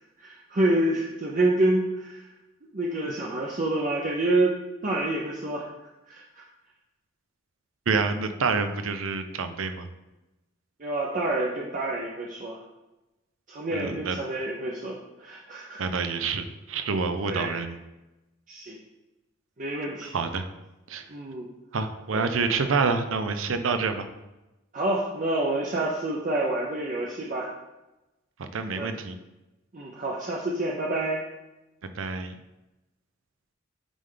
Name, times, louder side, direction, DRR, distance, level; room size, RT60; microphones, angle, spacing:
voice 1, 0.2-2.3 2.7-4.6 4.8-5.7 6.1-6.4 10.8-12.6 13.5-15.8 17.2-17.6 18.5-18.8 19.6-20.1 21.1-21.5 22.1-22.4 24.7-27.5 28.7-29.0 29.7-31.2, right 2 dB, 40° right, -3 dB, 0.6 m, -28 dB
voice 2, 7.9-9.9 13.7-14.2 15.8-17.8 20.1-20.5 20.9-21.0 21.7-24.1 28.4-29.2 31.9-32.4, right 4 dB, 90° right, 8 dB, 0.6 m, -27 dB
8.7 x 3.4 x 3.8 m, 1.0 s
head